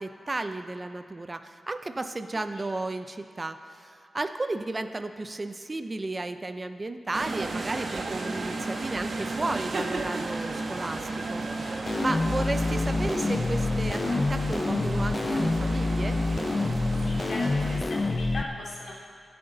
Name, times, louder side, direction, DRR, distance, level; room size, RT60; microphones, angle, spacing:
voice 1, 0.0-11.4 12.0-16.2, right 2 dB, 25° right, 9 dB, 0.5 m, -33 dB
sound 1, 7.1-17.8, right 3 dB, 55° right, 1.1 m, -34 dB
sound 2, 11.9-18.4, left 3 dB, 30° left, 0.5 m, -27 dB
voice 2, 12.2-12.6 17.0-18.9, left 2 dB, 65° left, -3 dB, 2.6 m, -39 dB
23.0 x 7.9 x 3.9 m, 2.3 s
wide cardioid pair, 110°, 0 cm